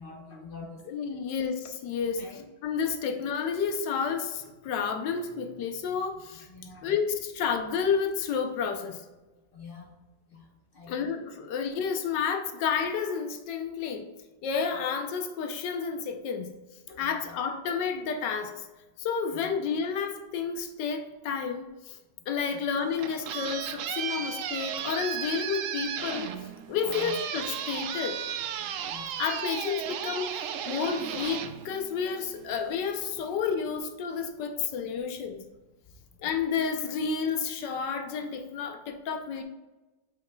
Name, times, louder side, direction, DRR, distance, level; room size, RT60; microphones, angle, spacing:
voice 1, 0.0-0.8 1.1-1.2 2.2-2.4 6.5-6.9 9.5-10.0 10.3-10.5 10.7-11.1 16.9-17.3 19.3-19.6 22.5-22.6 24.1-24.3 26.8-27.1 28.8-29.2 36.2-36.4, left 4 dB, 40° left, 1 dB, 0.9 m, -46 dB
voice 2, 0.9-2.2 2.6-6.5 6.8-9.0 10.9-14.1 14.4-16.5 17.0-18.6 19.0-22.0 22.3-26.4 26.7-28.2 29.2-35.5 36.2-39.4, left 6 dB, 80° left, 6 dB, 1.4 m, -30 dB
sound 1, 22.7-32.4, right 9 dB, 85° right, 0.7 m, -35 dB
8.0 x 6.1 x 2.2 m, 1.1 s
omnidirectional pair, 1.9 m